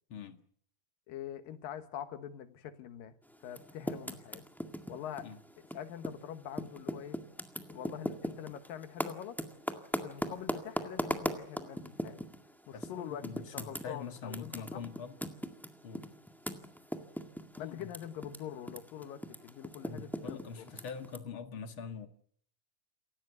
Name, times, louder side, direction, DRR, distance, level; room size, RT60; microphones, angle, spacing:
voice 1, 1.1-4.4 4.9-5.3 5.7-7.2 7.7-9.4 10.0-12.3 12.7-14.8 17.6-20.7, left 10 dB, 85° left, 3.2 m, -44 dB
Typing, 3.4-6.2 6.5-12.4 12.8-12.9 13.2-18.4 18.6-21.2, equal, ahead, 0.5 m, -38 dB
voice 2, 12.7-15.2 15.8-16.1 17.6-17.9 19.9-22.1, left 5 dB, 45° left, 2.0 m, -44 dB
28.5 x 16.0 x 8.2 m
omnidirectional pair, 3.9 m